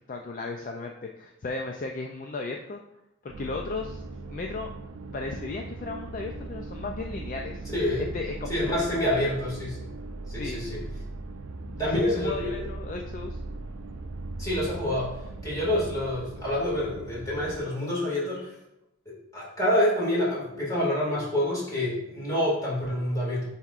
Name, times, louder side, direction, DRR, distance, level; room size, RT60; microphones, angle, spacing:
voice 1, 0.1-2.8 3.2-4.0 4.3-4.7 5.1-7.6 8.1-9.3 10.4-10.6 11.9-13.4, left 3 dB, 40° left, 3 dB, 0.3 m, -35 dB
sound 1, 3.3-17.6, right 2 dB, 85° right, 0.5 m, -39 dB
voice 2, 7.7-8.1 8.5-9.9 10.3-10.8 11.8-12.7 14.4-15.1 15.4-18.5 19.1-23.5, left 1 dB, 15° left, -6 dB, 2.1 m, -27 dB
9.4 x 4.2 x 2.5 m, 0.86 s
head